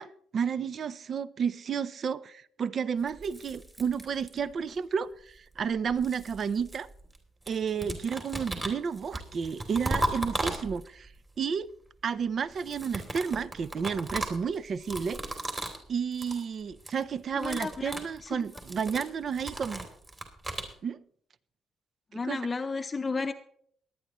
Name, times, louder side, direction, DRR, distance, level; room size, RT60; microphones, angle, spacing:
voice 1, 0.0-6.9 7.5-11.1 11.4-11.7 12.0-15.2 15.9-19.8 20.8-21.0 22.1-22.4, right 6 dB, 50° right, 0.6 m, -31 dB
sound 1, 3.1-4.6 5.6-7.2 7.5-11.1 12.5-15.9 16.1-16.4 16.7-17.0 17.3-20.7, right 1 dB, 30° right, 2.9 m, -36 dB
voice 2, 17.3-18.4 22.1-23.3, left 4 dB, 30° left, 0.6 m, -33 dB
22.5 x 9.4 x 3.1 m
cardioid pair, 90°, 0 cm